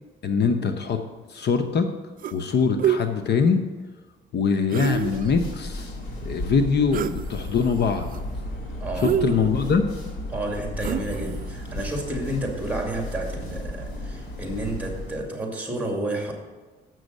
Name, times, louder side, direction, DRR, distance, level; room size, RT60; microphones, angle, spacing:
voice 1, 0.2-1.0 1.3-1.9 2.3-3.6 4.3-6.0 6.2-8.1 9.0-9.9, left 5 dB, 60° left, 7 dB, 0.8 m, -23 dB
sound 1, 2.2-2.5 2.8-3.0 4.7-5.3 6.9-7.2 7.6-8.2 8.9-9.8 10.8-11.3, right 9 dB, 45° right, 0.4 m, -26 dB
sound 2, 4.8-15.3, left 1 dB, 75° left, 3.3 m, -34 dB
voice 2, 8.8-9.2 10.3-16.3, right 1 dB, 5° right, 1 dB, 2.3 m, -30 dB
7.7 x 6.1 x 6.6 m, 1.3 s
cardioid pair, 90°, 20 cm